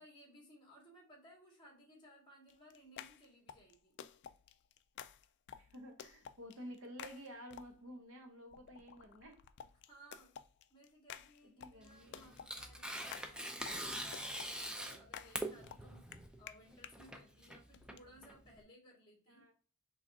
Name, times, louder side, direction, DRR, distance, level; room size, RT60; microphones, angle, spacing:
voice 1, 0.0-4.0 9.9-10.3 10.7-19.5, equal, 25° left, -2 dB, 1.7 m, -61 dB
sound 1, 2.5-8.0 8.5-17.0 17.7-18.0, left 9 dB, 55° left, 0.3 m, -53 dB
voice 2, 5.6-9.4 11.4-12.4 19.3-19.5, equal, 65° right, 4 dB, 0.9 m, -52 dB
Tearing, 11.8-18.6, right 1 dB, 5° right, 0.5 m, -44 dB
5.0 x 3.3 x 2.7 m, 0.41 s
head